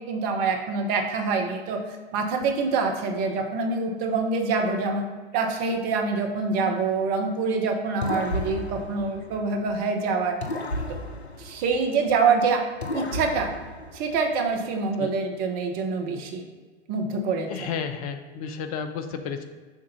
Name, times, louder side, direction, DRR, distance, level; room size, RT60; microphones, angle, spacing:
voice 1, 0.0-5.0 5.3-10.3 10.9-11.0 11.4-12.6 12.9-13.5 13.9-16.4 16.9-17.7, right 4 dB, 30° right, 3 dB, 0.8 m, -25 dB
sound 1, 8.0-9.9 10.4-12.3 12.8-14.5, left 2 dB, 90° left, 0.6 m, -34 dB
voice 2, 17.5-19.4, left 6 dB, 35° left, 7 dB, 0.6 m, -32 dB
7.1 x 2.5 x 5.4 m, 1.4 s
figure-of-eight pair, 100°, 31 cm